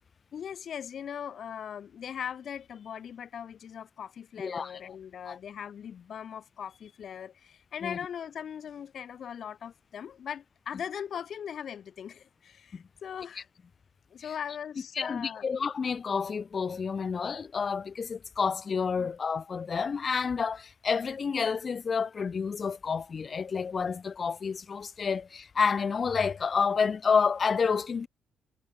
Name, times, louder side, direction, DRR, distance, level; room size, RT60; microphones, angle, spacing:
voice 1, 0.3-13.5 14.1-15.5 19.0-19.1, left 8 dB, 60° left, 3.8 m, -40 dB
voice 2, 4.4-4.8 5.3-5.4 7.8-8.0 12.7-12.8 15.0-28.1, left 5 dB, 40° left, 0.6 m, -29 dB
cardioid pair, 90°, 0 cm